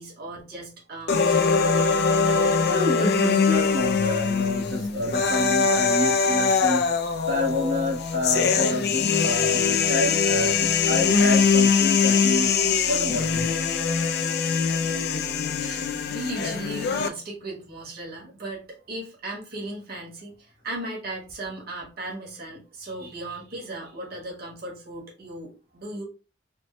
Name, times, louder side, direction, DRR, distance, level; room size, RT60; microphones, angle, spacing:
voice 1, 0.0-1.7 14.5-14.6 15.6-26.0, right 2 dB, 55° right, 1.4 m, -37 dB
sound 1, 1.1-17.1, left 5 dB, 60° left, 0.4 m, -22 dB
voice 2, 2.7-6.9 7.3-12.5 12.8-13.5, left 1 dB, 80° right, 1.1 m, -28 dB
4.4 x 2.1 x 3.1 m
head